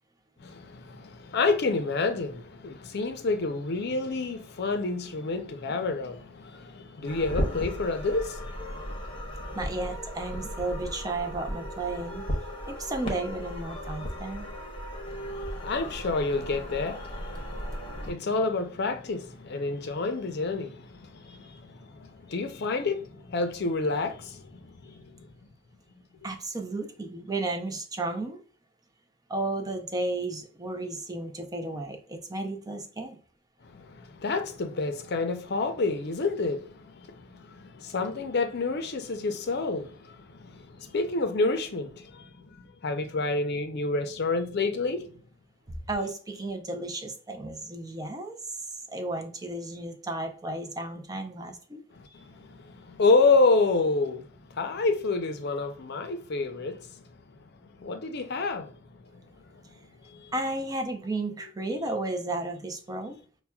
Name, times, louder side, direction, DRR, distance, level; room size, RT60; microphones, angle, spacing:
voice 1, 0.4-9.6 15.1-25.3 33.6-45.1 51.9-59.6 60.0-60.3, left 3 dB, 55° left, 0.6 m, -29 dB
sound 1, 7.1-18.1, equal, 30° left, 0.9 m, -36 dB
voice 2, 9.5-12.3 12.7-14.5 26.2-28.4 29.3-33.2 45.7-51.8 60.3-63.2, right 2 dB, 20° right, 0.5 m, -33 dB
5.6 x 2.2 x 2.3 m
head